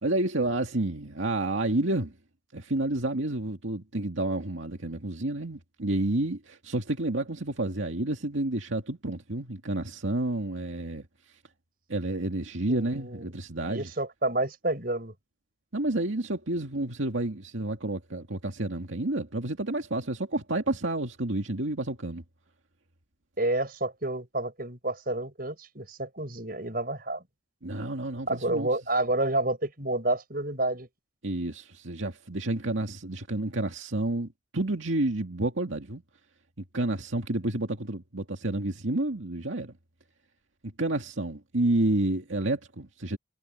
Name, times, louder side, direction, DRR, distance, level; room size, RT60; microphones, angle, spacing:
voice 1, 0.0-2.1 2.5-11.1 11.9-13.9 15.7-22.2 27.6-28.7 31.2-36.0 36.6-39.8 40.6-43.2, right 2 dB, 85° right, 2.3 m, -30 dB
voice 2, 12.7-13.3 13.7-15.1 23.4-27.2 28.3-30.9, right 2 dB, 50° right, 6.7 m, -29 dB
head